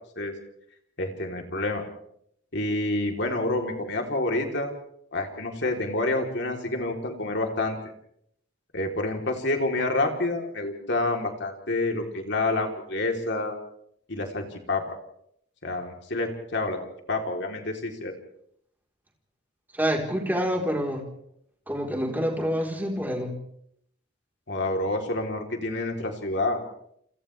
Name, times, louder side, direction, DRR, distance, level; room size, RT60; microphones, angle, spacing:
voice 1, 1.0-1.8 2.5-4.7 5.1-7.8 8.7-13.5 14.1-15.0 15.6-16.8 17.1-18.1 24.5-26.6, left 2 dB, 60° left, 2 dB, 3.6 m, -28 dB
voice 2, 19.7-21.1 21.7-23.3, equal, 10° right, 0 dB, 4.1 m, -27 dB
29.0 x 27.0 x 3.4 m, 0.71 s
head